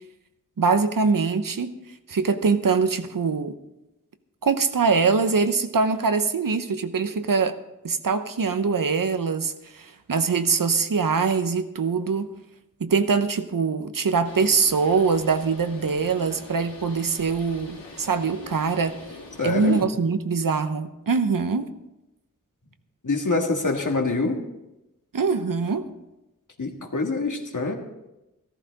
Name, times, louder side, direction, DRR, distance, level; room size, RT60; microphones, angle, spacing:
voice 1, 0.6-1.7 2.1-3.6 4.4-7.6 7.8-12.3 12.8-19.0 19.4-21.7 25.1-25.9, right 5 dB, 75° right, 9 dB, 0.9 m, -23 dB
Bird, 14.2-19.8, left 2 dB, 90° left, 2.9 m, -44 dB
voice 2, 19.4-19.8 23.0-24.4 26.6-27.8, left 3 dB, 65° left, 3 dB, 1.8 m, -25 dB
14.5 x 14.0 x 4.1 m, 0.95 s
wide cardioid pair, 75°, 33 cm